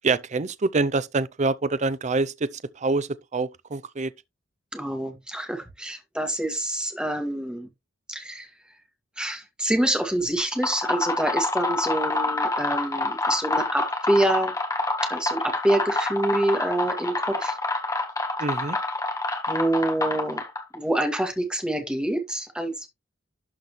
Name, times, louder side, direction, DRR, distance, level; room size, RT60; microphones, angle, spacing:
voice 1, 0.0-4.1 18.4-18.8, right 3 dB, 35° right, 0.5 m, -26 dB
voice 2, 4.7-7.7 8.1-8.5 9.2-14.5 15.1-17.6 19.5-20.4 20.7-22.9, right 1 dB, 5° right, 1.9 m, -26 dB
sound 1, 10.4-20.7, left 2 dB, 15° left, 1.6 m, -27 dB
12.0 x 4.1 x 3.2 m
head